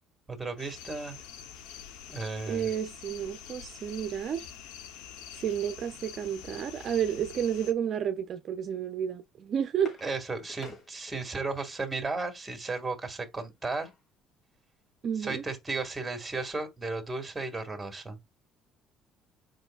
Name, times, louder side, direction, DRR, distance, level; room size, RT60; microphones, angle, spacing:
voice 1, 0.3-1.2 2.1-2.7 10.0-13.9 15.2-18.2, right 3 dB, 15° right, 2.1 m, -34 dB
sound 1, 0.6-7.7, left 8 dB, 90° left, 0.8 m, -46 dB
voice 2, 2.5-4.5 5.4-10.0 15.0-15.4, right 8 dB, 55° right, 0.5 m, -31 dB
sound 2, 9.1-11.6 13.2-14.1 14.5-14.6 14.9-15.1, left 2 dB, 50° left, 2.6 m, -51 dB
7.6 x 5.3 x 2.4 m
cardioid pair, 90°, 0 cm